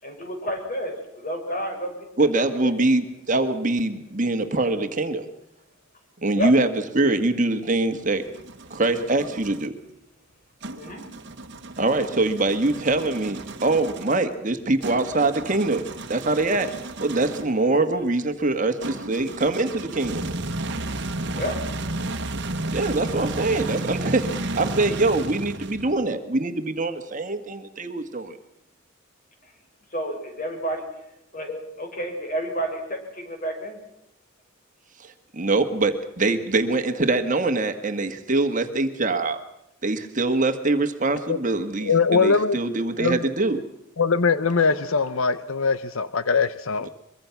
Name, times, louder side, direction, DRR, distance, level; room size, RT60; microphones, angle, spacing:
voice 1, 0.0-2.8 6.3-6.5 10.7-11.0 21.3-21.6 29.4-29.5 29.9-30.8 31.3-32.8 33.1-33.8, right 1 dB, 40° left, 3 dB, 6.0 m, -30 dB
voice 2, 2.2-5.3 6.2-6.7 6.9-8.2 8.7-9.7 11.8-20.2 22.7-28.3 35.0-39.4 39.8-43.6, right 2 dB, 35° right, 7 dB, 1.6 m, -23 dB
sound 1, 7.9-9.7 10.6-17.6 18.8-26.1, right 2 dB, 55° right, 1.4 m, -33 dB
voice 3, 41.8-42.6 43.0-43.3 44.0-46.9, left 5 dB, 75° left, 14 dB, 0.8 m, -22 dB
23.5 x 23.5 x 5.9 m, 0.86 s
head